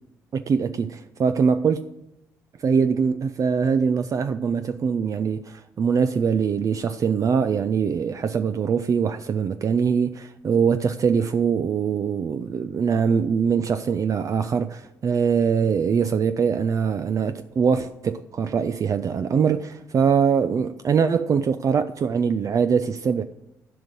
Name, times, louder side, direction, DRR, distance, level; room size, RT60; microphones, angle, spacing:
voice 1, 0.3-1.9 2.6-23.2, right 6 dB, 45° right, 0.5 m, -23 dB
11.0 x 5.3 x 8.1 m
supercardioid pair, 60°, 8 cm